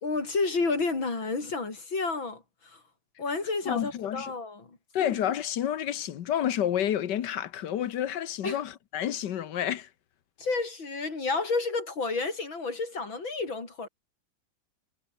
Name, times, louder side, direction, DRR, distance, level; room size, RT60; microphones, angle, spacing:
voice 1, 0.0-2.8 3.2-4.8 8.4-8.6 10.4-13.9, left 3 dB, 85° left, 5.3 m, -30 dB
voice 2, 3.7-4.3 4.9-9.9, left 10 dB, 65° left, 1.5 m, -29 dB
omnidirectional pair, 2.1 m